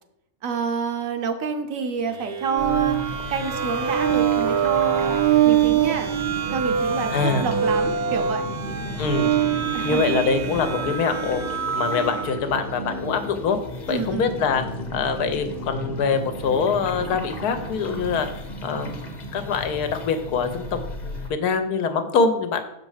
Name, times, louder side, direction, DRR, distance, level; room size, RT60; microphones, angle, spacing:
voice 1, 0.4-3.0 3.3-5.2 5.4-6.1 6.5-8.4 9.7-10.2 13.9-14.4, right 6 dB, 65° right, 6 dB, 1.0 m, -28 dB
sound 1, 2.1-12.4, right 9 dB, 90° right, 1.3 m, -24 dB
sound 2, 2.6-21.3, left 1 dB, 35° left, 0.9 m, -34 dB
voice 2, 7.1-7.4 9.0-9.3 9.8-13.6 13.9-14.6 14.9-18.3 18.6-22.6, left 5 dB, 85° left, 8 dB, 1.3 m, -24 dB
6.4 x 4.6 x 4.9 m, 0.82 s
omnidirectional pair, 1.6 m